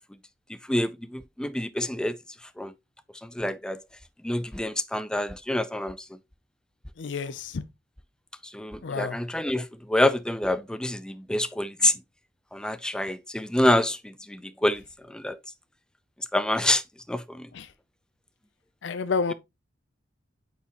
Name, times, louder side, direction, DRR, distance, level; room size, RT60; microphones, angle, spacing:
voice 1, 0.7-2.2 2.6-2.7 3.2-3.8 4.2-6.0 8.4-11.9 12.5-15.4 16.3-16.8 17.1-17.5, left 1 dB, 5° left, 0.3 m, -27 dB
voice 2, 7.0-7.6 8.8-9.2 17.5-17.7 18.8-19.3, left 5 dB, 70° left, 0.5 m, -29 dB
8.4 x 4.4 x 2.9 m
head